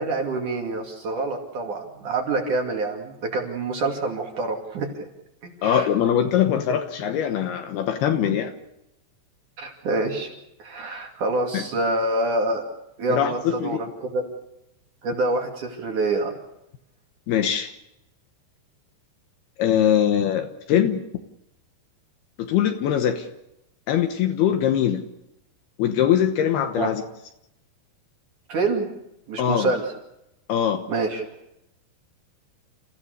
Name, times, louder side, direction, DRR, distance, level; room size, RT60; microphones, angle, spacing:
voice 1, 0.0-4.9 5.4-5.9 8.2-8.4 9.6-10.3 10.6-12.6 13.0-14.2 15.0-16.3 26.8-26.9 28.5-28.9 29.3-29.8 30.9-31.2, right 2 dB, 50° right, 1 dB, 3.7 m, -26 dB
voice 2, 5.6-8.5 11.5-11.6 13.1-13.8 17.3-17.7 19.6-21.0 22.4-23.3 23.9-25.0 25.8-27.0 29.4-29.7 30.5-30.8, left 9 dB, 70° left, 6 dB, 2.9 m, -22 dB
30.0 x 15.5 x 6.8 m, 0.85 s
omnidirectional pair, 4.9 m